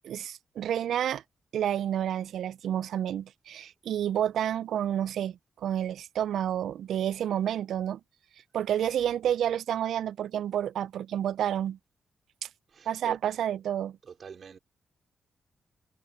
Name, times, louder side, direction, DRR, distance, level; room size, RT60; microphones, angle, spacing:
voice 1, 0.0-1.2 1.5-8.0 8.5-11.8 12.4-12.5 12.9-14.0, right 10 dB, 90° right, 0.3 m, -30 dB
voice 2, 12.7-13.2 14.1-14.6, right 6 dB, 60° right, 3.3 m, -42 dB
cardioid pair, 80°, 0 cm